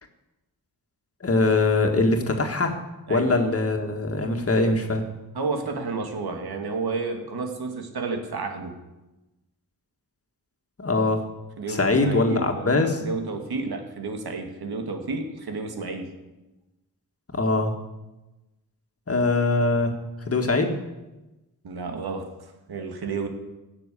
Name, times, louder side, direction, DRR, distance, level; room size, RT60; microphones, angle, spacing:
voice 1, 1.2-2.7 3.1-5.0 10.8-11.2 11.7-13.0 17.3-17.7 19.1-19.9 20.3-20.8, left 3 dB, 40° left, 4 dB, 1.8 m, -22 dB
voice 2, 5.3-8.8 11.6-16.1 21.6-22.3 22.7-23.3, right 4 dB, 85° right, 4 dB, 2.1 m, -31 dB
16.0 x 6.9 x 8.4 m, 1.0 s
wide cardioid pair, 125°, 37 cm